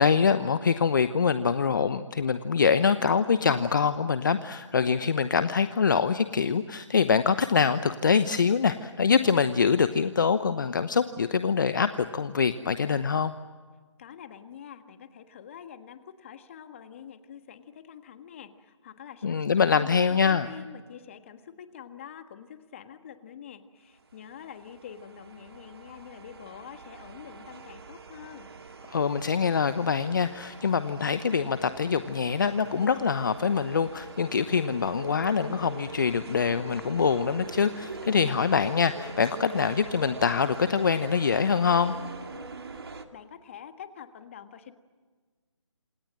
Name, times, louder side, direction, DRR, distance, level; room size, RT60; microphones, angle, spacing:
voice 1, 0.0-13.3 19.2-20.5 28.9-42.0, left 6 dB, 40° left, 12 dB, 0.9 m, -24 dB
voice 2, 14.0-28.5 43.1-44.7, left 8 dB, 25° left, 9 dB, 1.5 m, -46 dB
sound 1, 24.1-43.0, right 4 dB, 50° right, 2.4 m, -43 dB
27.5 x 27.0 x 7.6 m, 1.4 s
figure-of-eight pair, 160°, 16 cm